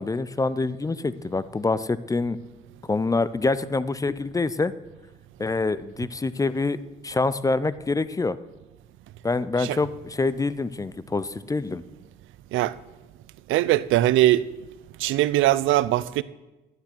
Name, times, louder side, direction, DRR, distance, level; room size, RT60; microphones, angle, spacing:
voice 1, 0.0-2.4 2.9-4.7 5.4-6.8 7.0-8.4 9.2-11.8, left 3 dB, 15° left, 0.4 m, -26 dB
voice 2, 13.5-14.5 15.0-16.2, right 15 dB, 80° right, 0.4 m, -21 dB
11.5 x 9.4 x 4.4 m
cardioid pair, 90°, 20 cm